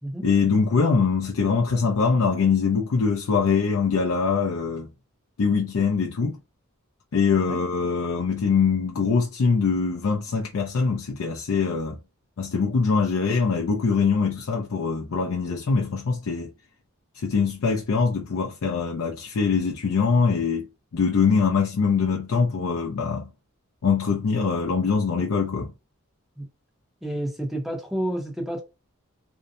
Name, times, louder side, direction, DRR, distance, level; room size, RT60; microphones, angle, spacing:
voice 1, 0.2-4.9 5.4-6.4 7.1-12.0 12.4-16.5 17.1-20.7 20.9-23.3 23.8-25.7, left 5 dB, 70° left, 0.4 m, -23 dB
voice 2, 27.0-28.6, right 1 dB, ahead, 0.7 m, -30 dB
2.6 x 2.1 x 2.6 m
head